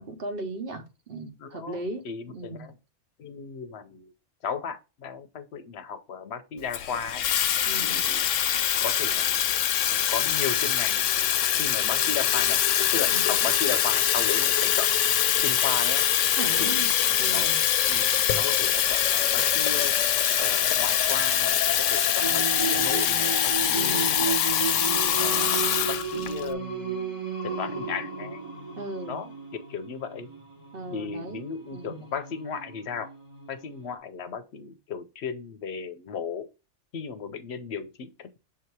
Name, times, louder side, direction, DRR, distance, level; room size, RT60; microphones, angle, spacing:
voice 1, 0.0-2.0 2.3-2.7 7.6-8.0 13.1-13.3 16.4-16.9 17.2-17.6 23.7-24.1 28.8-29.2 30.7-31.4 31.7-32.1, right 2 dB, 55° right, 1.0 m, -37 dB
voice 2, 1.4-2.7 3.2-4.1 4.4-7.2 7.8-8.3 8.8-9.3 10.1-11.0 11.6-12.6 12.9-14.9 15.4-16.1 16.6-17.5 17.9-20.0 20.4-24.5 25.2-28.4 29.1-29.3 29.7-30.3 30.9-33.1 33.5-36.5 36.9-38.4, left 6 dB, 70° left, 0.8 m, -35 dB
Water tap faucet / Fill (with liquid), 6.7-26.5, left 10 dB, 90° left, 1.0 m, -24 dB
sound 1, 16.8-23.5, left 3 dB, 30° left, 0.6 m, -39 dB
Singing, 22.2-33.9, right 6 dB, 25° right, 1.1 m, -34 dB
7.3 x 2.8 x 4.5 m
omnidirectional pair, 1.2 m